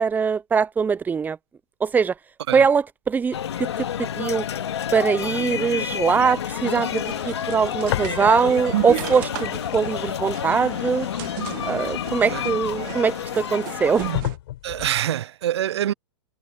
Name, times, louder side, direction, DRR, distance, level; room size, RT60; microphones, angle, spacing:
voice 1, 0.0-1.4 1.8-2.1 2.5-3.4 4.0-4.5 4.9-11.1 11.6-14.1, right 6 dB, 10° right, 0.7 m, -22 dB
sound 1, 3.3-14.2, left 9 dB, 85° left, 2.3 m, -29 dB
sound 2, 6.8-14.4, right 20 dB, 50° right, 1.2 m, -34 dB
sound 3, 7.9-8.7 9.0-12.9 13.5-13.6 14.1-15.0, left 14 dB, 65° left, 4.7 m, -33 dB
voice 2, 14.6-15.9, right 11 dB, 80° right, 0.6 m, -25 dB
hypercardioid pair, 130°, 14 cm